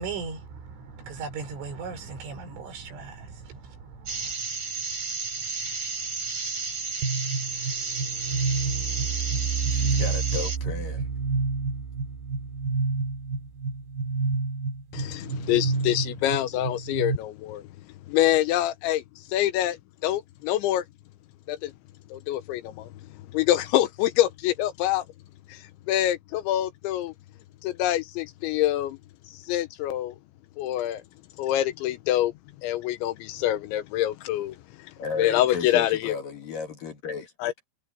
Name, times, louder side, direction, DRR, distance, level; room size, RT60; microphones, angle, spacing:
voice 1, 0.0-4.3, right 5 dB, 75° right, 6.8 m, -38 dB
sound 1, 4.1-10.6, right 4 dB, 30° right, 6.7 m, -32 dB
sound 2, 7.0-17.2, right 4 dB, 60° right, 4.7 m, -29 dB
voice 2, 9.7-11.1 35.0-37.3, left 5 dB, 55° left, 3.1 m, -34 dB
voice 3, 14.9-17.6 18.1-19.0 19.3-19.8 20.0-20.8 21.5-21.7 22.1-22.9 23.3-25.0 25.5-25.6 25.9-27.1 27.6-29.0 29.4-30.2 30.6-31.0 31.4-32.3 32.6-34.6 35.2-36.1 37.4-37.7, left 13 dB, 80° left, 3.0 m, -25 dB
omnidirectional pair, 5.6 m